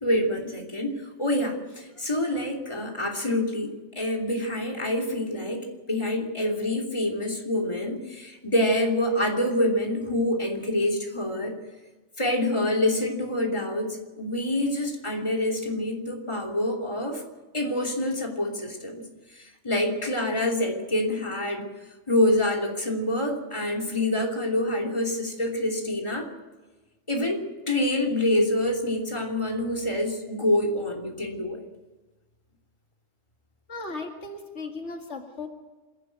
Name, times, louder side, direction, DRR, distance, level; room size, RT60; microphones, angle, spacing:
voice 1, 0.0-11.6 12.2-17.2 17.5-19.0 19.3-21.7 22.1-26.3 27.1-31.6, left 1 dB, 25° left, 0 dB, 3.1 m, -26 dB
voice 2, 33.7-35.5, left 3 dB, 75° left, 2 dB, 2.5 m, -36 dB
26.5 x 11.5 x 9.3 m, 1.2 s
omnidirectional pair, 1.2 m